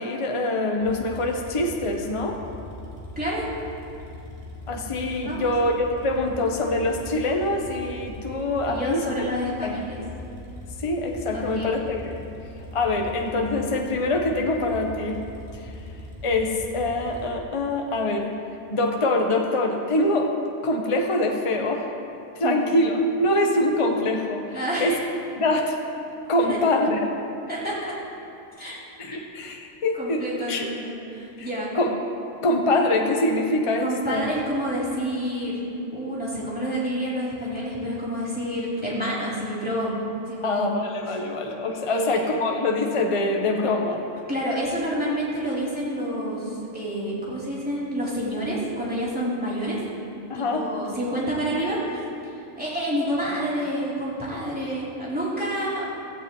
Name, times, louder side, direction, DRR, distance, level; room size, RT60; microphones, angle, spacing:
voice 1, 0.0-2.4 4.7-9.3 9.6-9.8 10.8-12.0 12.7-15.2 16.2-18.3 18.7-20.3 20.6-21.9 22.4-24.4 24.8-25.0 25.4-25.8 26.3-27.1 29.0-30.6 31.4-31.5 31.7-32.0 32.4-34.3 40.4-44.0 50.3-50.7, left 2 dB, 25° left, 2 dB, 0.9 m, -24 dB
sound 1, 0.8-17.3, left 2 dB, 25° right, 2.9 m, -40 dB
voice 2, 8.7-10.0 11.3-11.7 22.4-22.7 24.5-25.0 26.5-26.6 27.5-27.9 28.6-28.8 29.1-29.2 29.9-31.7 33.8-35.6 35.9-39.9 40.2-40.7 41.1-41.2 41.9-42.2 44.3-49.8 50.3-52.0 52.6-55.8, equal, 5° right, -9 dB, 3.3 m, -28 dB
16.0 x 14.5 x 3.1 m, 2.8 s
omnidirectional pair, 1.5 m